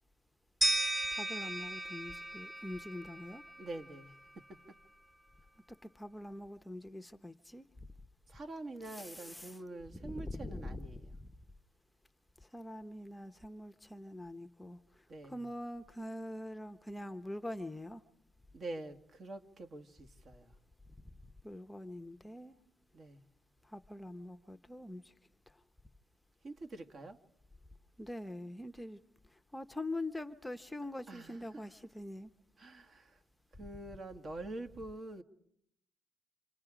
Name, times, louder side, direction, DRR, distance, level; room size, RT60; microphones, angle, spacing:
sound 1, 0.6-3.5, right 1 dB, 10° right, 1.5 m, -35 dB
voice 1, 1.2-3.4 5.9-7.6 8.9-9.6 10.0-10.8 12.5-14.8 15.3-18.0 21.4-22.5 23.7-25.0 28.0-29.0 29.5-32.3, left 1 dB, 10° left, 0.8 m, -43 dB
voice 2, 3.6-4.6 8.3-11.2 15.1-15.5 18.5-20.6 22.9-23.2 26.4-27.2 31.1-31.7 32.6-33.2 33.5-35.2, right 2 dB, 45° right, 1.7 m, -46 dB
27.0 x 26.0 x 5.0 m
cardioid pair, 90°, 0 cm